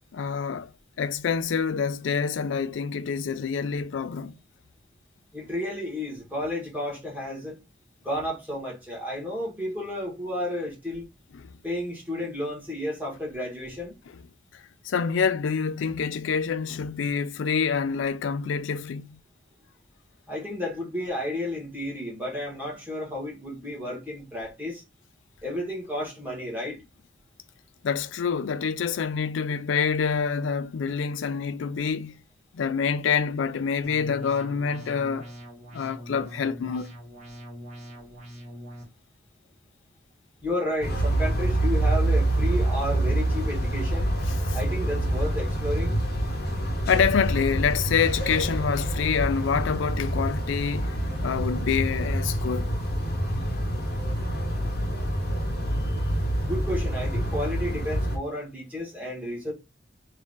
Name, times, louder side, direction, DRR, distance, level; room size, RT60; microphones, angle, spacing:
voice 1, 0.1-0.7 1.0-4.3 11.3-11.5 14.8-19.2 27.8-32.2 32.5-35.3 35.7-36.9 44.5-44.6 46.9-51.0 51.2-52.7, left 6 dB, 75° left, 0.4 m, -27 dB
voice 2, 5.3-7.6 8.0-11.1 11.6-14.0 20.3-24.8 25.4-26.8 40.4-44.1 44.5-46.0 56.4-59.5, left 1 dB, 10° right, 1.9 m, -32 dB
sound 1, 33.8-38.8, equal, 40° right, 1.7 m, -43 dB
sound 2, 40.8-58.2, right 1 dB, 55° left, 1.0 m, -26 dB
3.6 x 2.8 x 3.5 m
head